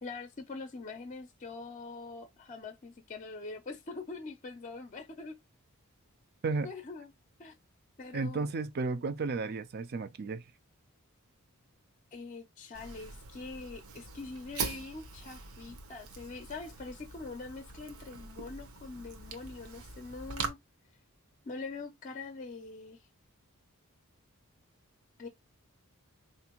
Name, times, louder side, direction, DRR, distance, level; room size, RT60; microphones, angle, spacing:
voice 1, 0.0-5.3 6.6-7.1 7.4-7.5 8.0-8.5 12.1-20.6 21.4-23.1 25.2-25.3, left 3 dB, 35° left, 0.5 m, -43 dB
voice 2, 8.1-10.4, right 3 dB, 45° right, 0.5 m, -33 dB
Fire, 12.7-20.5, right 5 dB, 75° right, 0.8 m, -42 dB
4.2 x 2.6 x 2.9 m
head